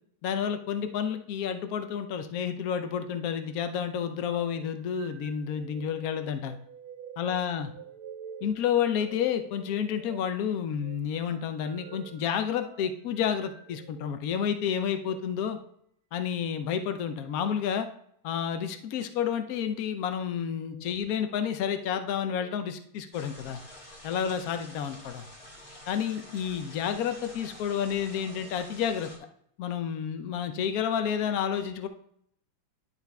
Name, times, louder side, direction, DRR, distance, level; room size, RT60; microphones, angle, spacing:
voice 1, 0.2-6.6 7.2-7.7 8.4-15.6 16.1-17.9 18.2-23.6 24.0-25.3 25.9-29.1 29.6-31.9, left 8 dB, 65° left, 8 dB, 0.9 m, -30 dB
sound 1, 4.2-14.2 14.9-15.2 17.2-17.5 18.4-18.9 19.4-19.7 20.5-21.0 21.5-22.5, right 7 dB, 80° right, 1.4 m, -49 dB
sound 2, 23.1-29.2, left 1 dB, 30° left, 1.9 m, -48 dB
11.0 x 4.1 x 3.4 m, 0.67 s
omnidirectional pair, 2.3 m